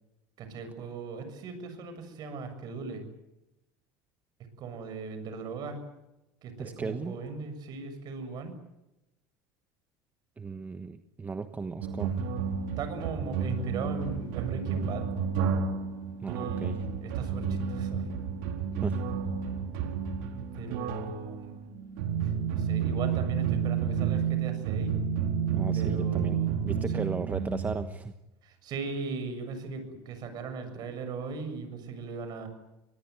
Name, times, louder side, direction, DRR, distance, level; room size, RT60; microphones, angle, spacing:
voice 1, 0.4-3.0 4.6-5.8 6.4-8.5 12.8-15.1 16.3-18.1 20.5-21.7 22.2-25.0 25.7-27.2 28.4-32.5, right 4 dB, 45° right, 9 dB, 7.0 m, -38 dB
voice 2, 6.6-7.1 10.4-12.1 16.2-16.7 18.8-19.0 25.5-28.1, right 4 dB, 15° right, 8 dB, 1.2 m, -36 dB
sound 1, 11.8-27.8, right 7 dB, 85° right, 4.2 m, -31 dB
24.5 x 20.5 x 9.5 m, 0.93 s
cardioid pair, 135°, 9 cm